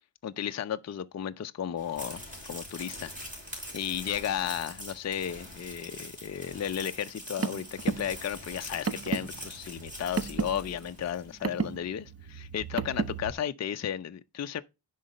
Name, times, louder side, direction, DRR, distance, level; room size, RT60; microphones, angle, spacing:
voice 1, 0.2-2.2 2.5-3.1 3.7-14.6, left 9 dB, 40° left, 0.4 m, -34 dB
sound 1, 1.8-11.3, equal, 15° right, 3.3 m, -44 dB
Car, 7.1-13.3, right 5 dB, 35° right, 0.5 m, -34 dB
10.5 x 3.8 x 5.3 m
wide cardioid pair, 170°, 46 cm